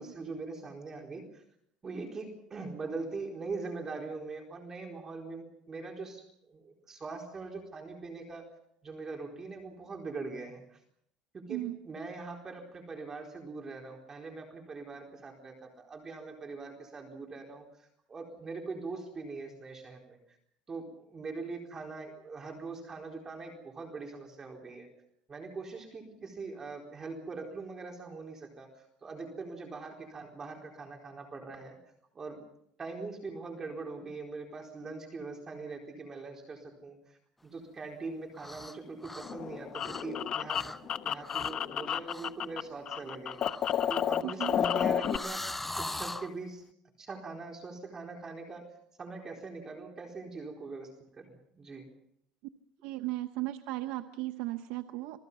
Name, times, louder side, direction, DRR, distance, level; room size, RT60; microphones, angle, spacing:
voice 1, 0.0-1.4 1.8-8.4 8.8-10.8 11.3-20.4 20.7-24.9 25.3-31.8 32.1-32.4 32.8-43.4 43.9-46.6 47.0-48.7 49.0-51.9, right 3 dB, 25° right, 1 dB, 4.2 m, -42 dB
sound 1, 38.3-38.8 39.0-40.2 40.5-40.8 41.2-41.6 42.1-42.3 43.3-46.3, left 2 dB, 10° left, 0.7 m, -41 dB
sound 2, 39.2-42.6 42.9-45.2, left 9 dB, 40° left, 0.9 m, -31 dB
voice 2, 44.2-44.5 52.8-55.2, right 17 dB, 80° right, 8 dB, 1.0 m, -36 dB
27.5 x 19.5 x 5.6 m, 0.73 s
cardioid pair, 130°, 2 cm